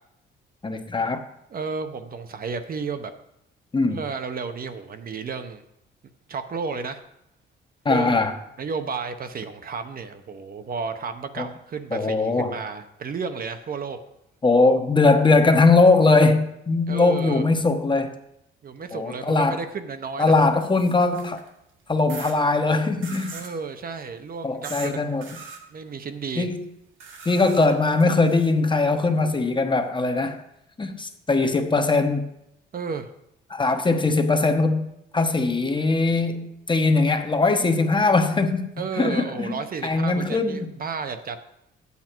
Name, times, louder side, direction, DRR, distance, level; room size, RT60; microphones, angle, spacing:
voice 1, 0.6-1.2 3.7-4.0 7.8-8.3 11.4-11.5 11.9-12.5 14.4-18.1 18.9-19.6 20.2-21.4 21.9-23.4 24.4-25.3 26.4-26.6 27.2-30.4 30.8-32.3 33.5-34.9 35.1-38.7 39.0-39.5 39.8-40.7, left 3 dB, 25° left, 1.0 m, -20 dB
voice 2, 1.5-3.1 3.9-5.6 6.3-7.0 7.9-8.3 8.6-14.0 16.9-17.4 18.6-20.4 23.3-25.1 25.7-26.5 32.7-33.1 38.8-41.4, right 5 dB, 45° right, 0.9 m, -32 dB
sound 1, 20.4-21.5 22.1-22.3 23.0-23.5 24.6-24.9 25.2-25.6 27.0-28.5, right 5 dB, 75° right, 1.8 m, -41 dB
8.9 x 8.4 x 4.5 m
cardioid pair, 90°, 20 cm